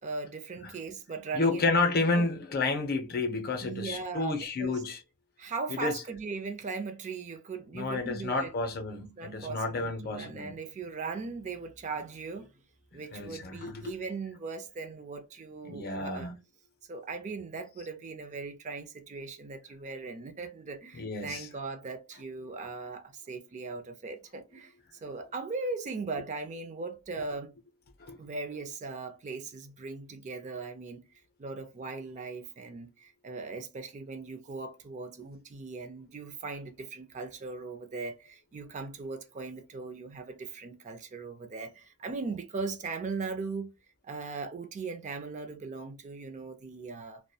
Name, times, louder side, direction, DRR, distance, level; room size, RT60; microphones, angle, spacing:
voice 1, 0.0-1.7 2.1-2.3 3.6-4.8 5.4-8.5 9.2-12.5 12.9-16.3 16.9-24.7 25.0-27.5 28.2-31.1 31.4-43.7 44.0-47.2, right 4 dB, 35° right, 0.4 m, -39 dB
voice 2, 1.3-5.0 5.7-6.0 7.7-10.6 13.1-13.9 15.6-16.3 20.9-21.5 28.0-28.2, left 3 dB, 45° left, 0.6 m, -30 dB
2.3 x 2.1 x 2.6 m
head